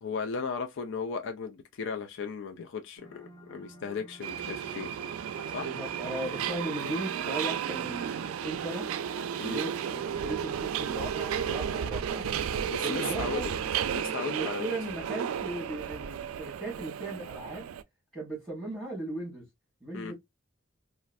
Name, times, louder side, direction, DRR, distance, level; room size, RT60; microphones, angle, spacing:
voice 1, 0.0-4.9 5.5-5.7 9.4-9.6 12.7-13.5 13.9-14.7 19.9-20.1, left 5 dB, 65° left, 0.4 m, -36 dB
sound 1, 3.0-14.3, left 1 dB, 20° left, 1.0 m, -48 dB
Subway metro underground, 4.2-17.8, right 8 dB, 90° right, 0.3 m, -33 dB
voice 2, 5.6-8.9 9.4-12.3 12.8-13.5 14.2-17.7 18.1-19.4 19.8-20.1, right 2 dB, ahead, 1.5 m, -37 dB
3.1 x 2.4 x 2.5 m
head